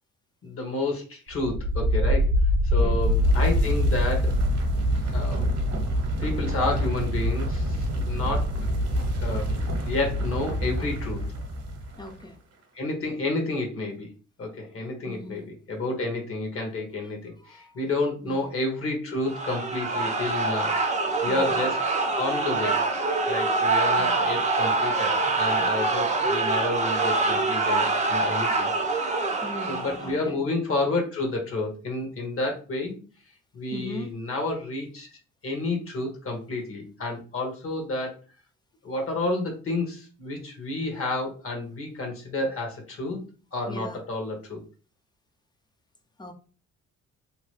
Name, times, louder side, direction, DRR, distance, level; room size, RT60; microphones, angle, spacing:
voice 1, 0.4-2.3 2.7-4.3 5.1-5.5 6.2-8.4 9.2-11.2 12.7-14.1 14.4-20.7 21.2-21.8 22.1-22.8 23.3-33.0 33.5-35.1 35.4-38.1 38.8-43.2 43.5-44.6, left 2 dB, 45° left, 1.2 m, -30 dB
sound 1, 1.3-12.1, equal, 55° right, 0.9 m, -25 dB
voice 2, 2.8-3.1 12.0-12.4 15.0-15.4 17.4-17.8 18.2-18.5 21.3-21.5 24.0-24.1 29.4-30.4 33.7-34.1 43.7-44.0 46.2-46.3, left 1 dB, 15° left, 0.5 m, -39 dB
sound 2, 19.2-30.2, right 3 dB, 25° right, 0.7 m, -25 dB
2.9 x 2.2 x 3.1 m
cardioid pair, 90°, 30 cm